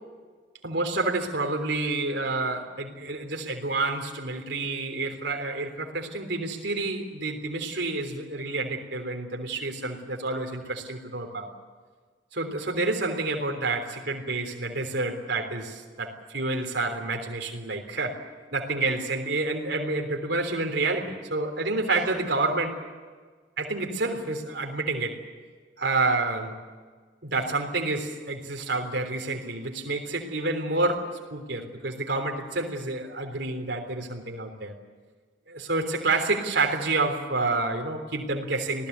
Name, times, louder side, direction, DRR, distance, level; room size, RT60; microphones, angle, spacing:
voice 1, 0.6-11.5 12.3-18.2 18.5-22.8 23.6-25.2 25.8-26.5 27.2-34.7 35.5-38.9, right 3 dB, 65° right, 2 dB, 3.5 m, -29 dB
27.0 x 18.5 x 8.2 m, 1.5 s
head